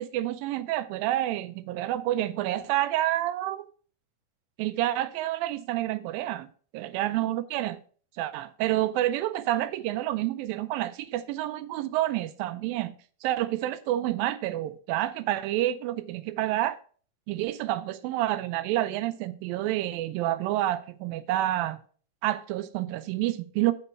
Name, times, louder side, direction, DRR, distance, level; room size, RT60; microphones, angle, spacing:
voice 1, 0.0-3.7 4.6-7.8 8.2-12.9 13.2-16.8 17.3-21.8 22.2-23.7, right 14 dB, 85° right, 2.3 m, -28 dB
9.4 x 6.0 x 4.5 m
omnidirectional pair, 4.1 m